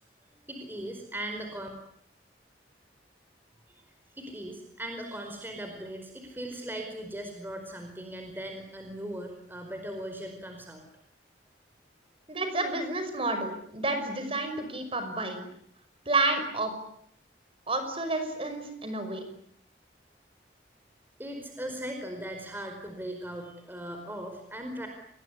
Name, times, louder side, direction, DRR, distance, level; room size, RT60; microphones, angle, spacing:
voice 1, 0.5-1.7 3.7-3.8 4.2-10.8 21.2-24.9, right 1 dB, 10° right, 4 dB, 4.8 m, -39 dB
voice 2, 12.3-15.5 16.1-16.7 17.7-19.2, right 2 dB, 30° right, 8 dB, 5.6 m, -30 dB
28.5 x 21.0 x 9.6 m, 0.69 s
head